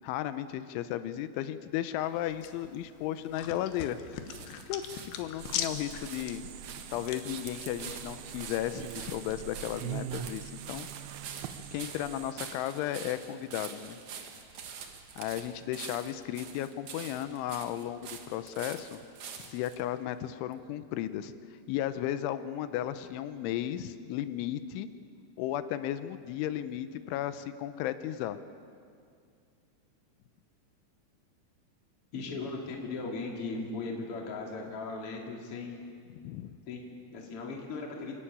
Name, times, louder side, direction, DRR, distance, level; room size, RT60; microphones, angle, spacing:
voice 1, 0.0-4.0 4.7-6.4 6.9-10.9 11.7-14.0 15.2-19.0 19.4-21.3 21.7-24.9 25.4-28.4 36.2-36.6, left 12 dB, 90° left, 12 dB, 3.2 m, -34 dB
sound 1, 2.0-7.7, left 9 dB, 70° left, 3.0 m, -41 dB
sound 2, 3.3-19.8 20.5-20.6, right 7 dB, 65° right, 1.9 m, -46 dB
sound 3, 5.4-12.3, right 11 dB, 80° right, 2.2 m, -43 dB
voice 2, 32.1-35.8 36.7-38.2, left 3 dB, 35° left, 0 dB, 2.8 m, -38 dB
29.0 x 12.0 x 8.9 m, 2.3 s
omnidirectional pair, 5.4 m